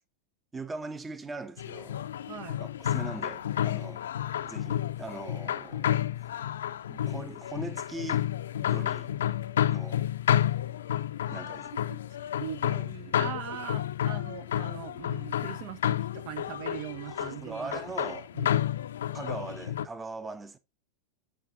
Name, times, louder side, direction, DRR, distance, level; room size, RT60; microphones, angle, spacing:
voice 1, 0.5-2.0 2.6-4.0 4.4-5.9 6.2-6.3 6.9-8.3 8.6-9.1 9.7-10.0 11.3-11.7 17.1-18.3 19.1-20.6, right 3 dB, 15° right, 0.9 m, -40 dB
sound 1, 1.6-19.9, left 11 dB, 60° left, 0.6 m, -31 dB
voice 2, 2.3-2.6 11.7-12.0 12.4-17.8 18.1-18.5, right 10 dB, 45° right, 0.8 m, -41 dB
13.0 x 5.0 x 2.8 m
figure-of-eight pair, 90°, 0 cm